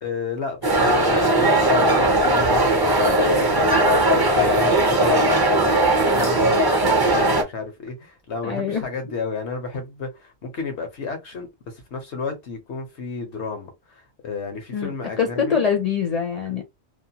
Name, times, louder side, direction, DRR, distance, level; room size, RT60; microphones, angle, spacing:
voice 1, 0.0-15.6, left 4 dB, 90° left, 1.2 m, -32 dB
sound 1, 0.6-7.4, right 1 dB, 30° right, 0.5 m, -18 dB
voice 2, 8.4-8.8 14.7-14.9 15.2-16.6, left 6 dB, 45° left, 0.5 m, -23 dB
2.7 x 2.2 x 2.8 m
omnidirectional pair, 1.1 m